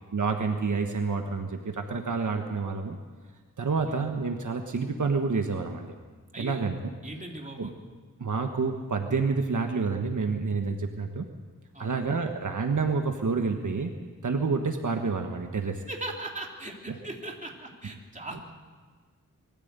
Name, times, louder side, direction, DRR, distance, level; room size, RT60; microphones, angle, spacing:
voice 1, 0.1-3.0 3.6-5.9 6.4-6.8 7.6-7.7 8.2-11.2 11.8-13.9 14.2-15.8, right 4 dB, 65° right, 4 dB, 1.4 m, -28 dB
voice 2, 3.6-4.0 6.3-6.7 7.0-7.7 11.7-12.1 15.9-18.4, right 2 dB, 25° right, 0 dB, 3.1 m, -39 dB
22.0 x 14.5 x 8.2 m, 1.4 s
wide cardioid pair, 95°, 32 cm